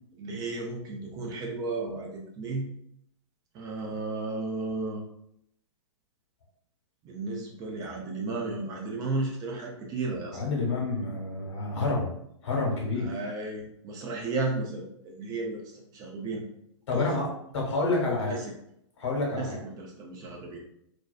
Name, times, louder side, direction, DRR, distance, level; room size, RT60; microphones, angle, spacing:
voice 1, 0.2-2.7 3.5-5.0 7.0-10.4 13.0-16.4 16.9-17.1 18.2-18.5 19.3-20.6, right 3 dB, 25° right, 0 dB, 0.4 m, -34 dB
voice 2, 10.3-12.1 12.4-13.3 16.9-17.3 17.5-18.3 19.0-19.6, left 3 dB, 60° left, -2 dB, 1.1 m, -28 dB
2.4 x 2.3 x 2.2 m, 0.73 s
hypercardioid pair, 120°, 16 cm